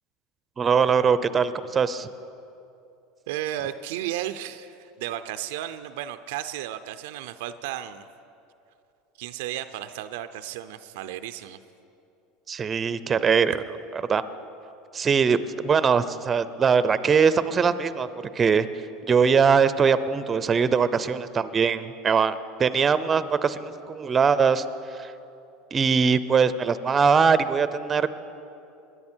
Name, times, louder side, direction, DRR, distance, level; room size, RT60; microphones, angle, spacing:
voice 1, 0.6-2.1 12.5-13.6 14.1-14.2 14.9-18.1 18.3-18.7 19.1-24.6 25.0-25.1 25.7-28.1, right 6 dB, 30° right, 14 dB, 0.6 m, -21 dB
voice 2, 3.3-8.1 9.2-11.6, right 12 dB, 75° right, 11 dB, 0.5 m, -34 dB
21.5 x 10.5 x 4.5 m, 2.7 s
hypercardioid pair, 95°, 0 cm